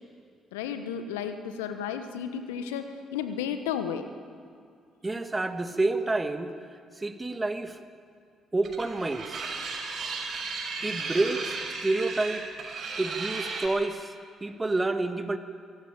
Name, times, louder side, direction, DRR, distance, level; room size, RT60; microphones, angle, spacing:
voice 1, 0.5-4.1, left 8 dB, 80° left, 8 dB, 1.3 m, -33 dB
voice 2, 5.0-6.5 7.0-7.8 8.5-9.5 10.8-12.5 13.0-14.1 14.4-15.4, right 2 dB, 20° right, 8 dB, 2.0 m, -29 dB
sound 1, 8.6-13.7, right 4 dB, 50° right, 5.6 m, -35 dB
24.5 x 16.5 x 8.9 m, 2.3 s
hypercardioid pair, 45°, 0 cm